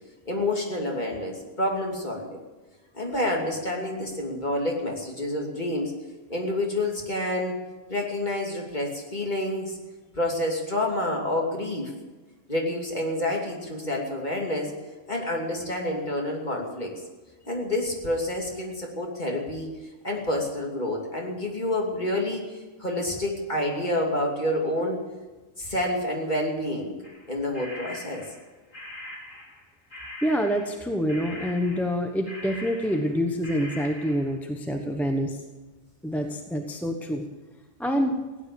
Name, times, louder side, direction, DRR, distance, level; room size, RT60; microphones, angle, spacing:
voice 1, 0.3-2.4 2.9-5.9 6.3-7.6 7.9-9.8 10.1-11.9 12.5-14.7 15.1-16.9 17.4-19.7 20.0-25.0 25.6-27.0 27.3-28.2, left 1 dB, 35° left, 0 dB, 2.9 m, -28 dB
sound 1, 27.0-29.7 29.9-33.2 33.4-34.4, left 1 dB, 70° left, 3.4 m, -42 dB
voice 2, 30.2-35.4 36.0-37.2 37.8-38.2, equal, ahead, 4 dB, 1.0 m, -26 dB
16.5 x 10.0 x 8.5 m, 1.2 s
omnidirectional pair, 1.4 m